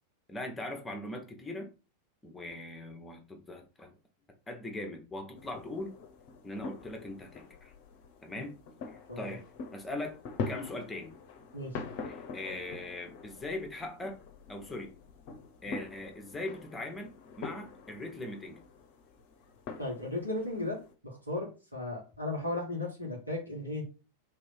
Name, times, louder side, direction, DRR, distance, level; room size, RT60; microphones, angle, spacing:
voice 1, 0.3-1.7 2.2-3.9 4.5-5.9 6.4-7.7 8.2-8.5 8.9-9.4 9.7-10.2 10.5-11.1 12.0-14.2 14.5-14.9 15.6-18.6, left 2 dB, 10° left, 4 dB, 1.1 m, -40 dB
sound 1, 5.3-20.9, left 4 dB, 45° left, 0.8 m, -44 dB
voice 2, 19.8-20.8 21.0-23.8, left 2 dB, 85° right, -3 dB, 2.0 m, -35 dB
3.4 x 3.1 x 4.6 m, 0.32 s
figure-of-eight pair, 90°, 0 cm